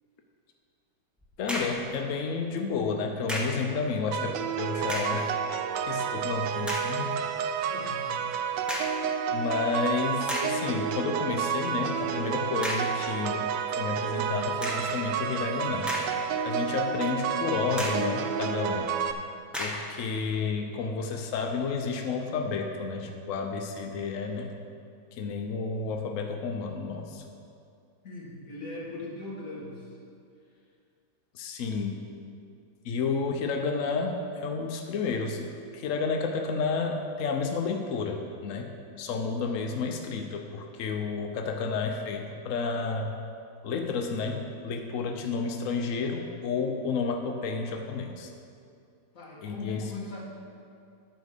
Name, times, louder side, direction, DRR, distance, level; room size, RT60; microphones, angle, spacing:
sound 1, 1.2-1.9 3.3-3.7 4.8-5.3 5.9-6.0 6.6-7.0 8.7-9.1 9.7-9.8 10.3-10.7 12.6-13.0 14.6-15.0 15.6-16.4 16.8-16.9 17.8-18.1 19.5-19.9, left 1 dB, ahead, 0.6 m, -34 dB
voice 1, 1.4-5.3 5.9-7.2 9.3-15.9 16.4-18.9 19.6-24.5 25.1-27.2 31.3-32.0 32.8-35.5 35.7-43.1 43.6-48.3 49.4-49.8, left 4 dB, 75° left, 3 dB, 0.7 m, -31 dB
sound 2, 4.1-19.1, right 7 dB, 75° right, 1.1 m, -30 dB
voice 2, 7.5-8.3 20.6-21.0 28.0-30.0 49.1-50.2, left 2 dB, 40° left, -5 dB, 2.2 m, -40 dB
10.5 x 5.2 x 6.7 m, 2.4 s
omnidirectional pair, 2.2 m